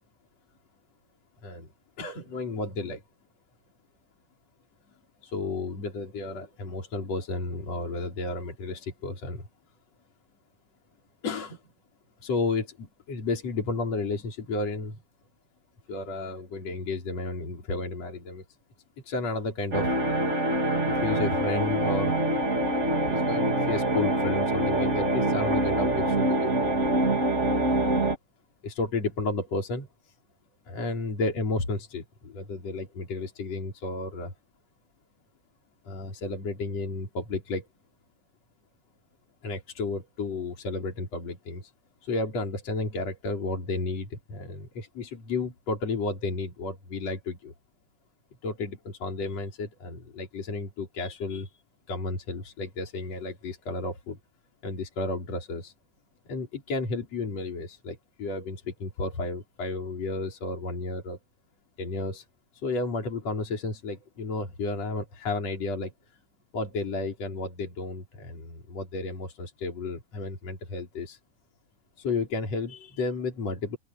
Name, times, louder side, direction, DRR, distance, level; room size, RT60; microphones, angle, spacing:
voice 1, 2.0-3.0 5.2-9.5 11.2-11.6 12.2-15.0 15.9-18.4 19.1-20.4 20.8-22.1 23.1-26.8 27.8-28.1 28.6-29.9 30.7-34.3 35.9-37.7 39.4-41.7 42.0-47.5 48.4-51.5 51.9-54.2 54.6-55.7 56.3-61.2 61.8-62.2 62.6-65.9 66.5-71.2 72.0-73.8, left 3 dB, 50° left, 5.7 m, -32 dB
sound 1, 19.7-28.1, right 1 dB, 20° right, 3.0 m, -25 dB
open air
omnidirectional pair, 3.8 m